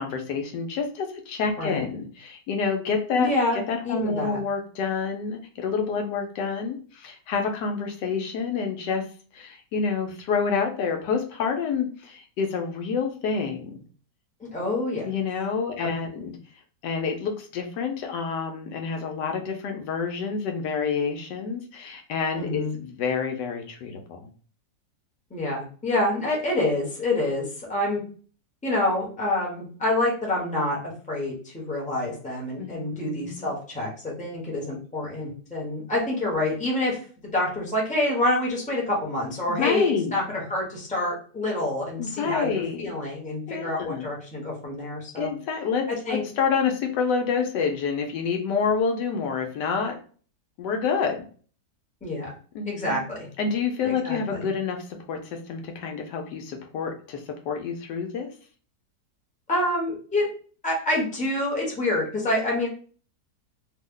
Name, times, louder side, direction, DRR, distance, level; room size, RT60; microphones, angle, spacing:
voice 1, 0.0-9.0 9.3-13.8 15.0-16.3 16.8-24.3 32.6-33.5 39.5-40.1 42.0-42.9 43.5-44.1 45.2-50.0 50.6-51.3 52.5-53.0 53.4-54.8 55.1-58.3, left 5 dB, 90° left, 3 dB, 1.3 m, -28 dB
voice 2, 1.6-1.9 3.2-4.4 14.4-15.1 15.8-15.9 22.3-22.8 25.3-28.0 28.6-37.0 37.3-45.3 45.9-46.2 52.0-52.3 52.6-53.3 53.8-54.5 59.5-60.3 60.6-62.7, left 1 dB, 5° left, -4 dB, 0.8 m, -27 dB
3.1 x 2.1 x 3.7 m, 0.42 s
omnidirectional pair, 1.8 m